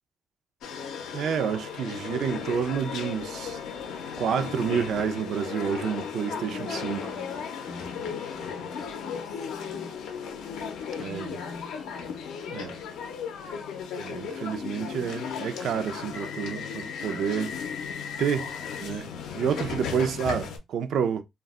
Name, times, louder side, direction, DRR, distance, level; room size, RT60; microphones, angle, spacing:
sound 1, 0.6-20.6, left 6 dB, 85° left, 0.5 m, -35 dB
voice 1, 1.1-3.6 4.2-7.0 11.0-11.4 12.5-12.8 14.0-17.5 18.2-18.5 18.8-21.2, right 7 dB, 70° right, 0.4 m, -29 dB
voice 2, 6.3-10.1 10.9-12.3 19.3-19.9, left 2 dB, 35° left, 0.6 m, -46 dB
2.2 x 2.0 x 3.5 m
cardioid pair, 90°, 0 cm